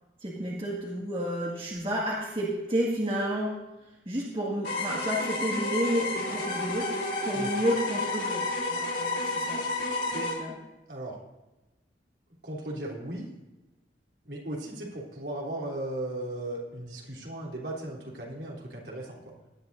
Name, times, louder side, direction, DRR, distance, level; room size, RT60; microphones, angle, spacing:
voice 1, 0.2-3.5 4.1-7.0 7.2-9.6 10.4-10.5, equal, 30° right, -4 dB, 2.0 m, -31 dB
sound 1, 4.6-10.3, left 2 dB, 75° left, 3.4 m, -31 dB
voice 2, 12.4-13.3 14.3-19.2, right 1 dB, 70° right, -3 dB, 3.5 m, -36 dB
18.5 x 11.5 x 2.7 m, 1.0 s
head